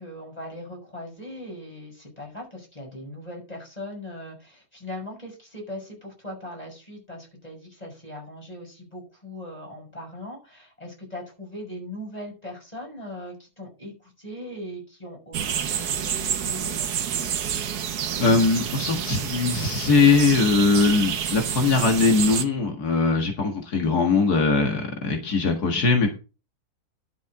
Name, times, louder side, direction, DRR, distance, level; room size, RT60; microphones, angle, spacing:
voice 1, 0.0-16.8, left 1 dB, 25° left, 0 dB, 6.2 m, -39 dB
sound 1, 15.3-22.4, right 8 dB, 80° right, 1.5 m, -28 dB
voice 2, 18.2-26.2, left 4 dB, 85° left, 3 dB, 2.3 m, -21 dB
11.5 x 6.8 x 4.8 m, 0.32 s
omnidirectional pair, 1.6 m